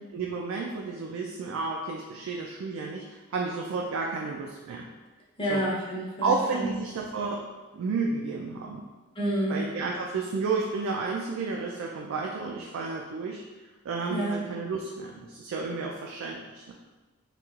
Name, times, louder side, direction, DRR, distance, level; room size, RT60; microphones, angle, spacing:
voice 1, 0.1-4.9 5.5-5.6 6.2-7.4 7.7-8.9 9.5-13.4 13.8-16.7, right 4 dB, 65° right, -1 dB, 0.3 m, -31 dB
voice 2, 5.4-6.7 9.2-9.6 14.1-14.4, right 1 dB, 25° left, -5 dB, 0.7 m, -29 dB
3.0 x 2.9 x 2.3 m, 1.2 s
head